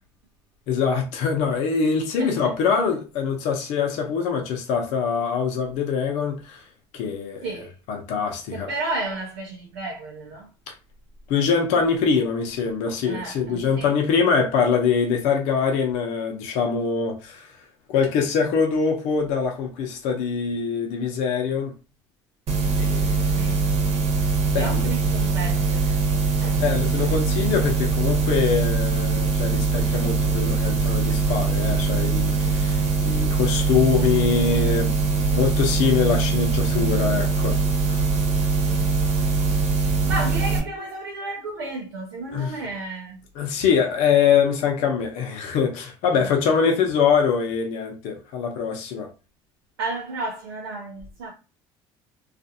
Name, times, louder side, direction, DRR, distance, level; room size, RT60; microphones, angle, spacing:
voice 1, 0.7-6.6 6.9-7.4 7.9-8.7 10.7-10.8 11.3-17.5 17.9-21.7 22.8-23.5 24.5-24.9 26.5-37.6 37.9-38.0 42.3-42.6 43.4-49.1, left 6 dB, 70° left, 0.7 m, -23 dB
voice 2, 7.4-7.7 8.5-10.5 13.0-13.9 23.3-23.7 24.5-26.6 30.2-30.3 38.6-39.1 39.9-43.2 46.1-46.3 49.8-51.3, right 2 dB, 90° right, 0.7 m, -33 dB
sound 1, 22.5-40.6, right 4 dB, 60° right, 1.0 m, -22 dB
2.4 x 2.4 x 2.7 m
hypercardioid pair, 75°, 12 cm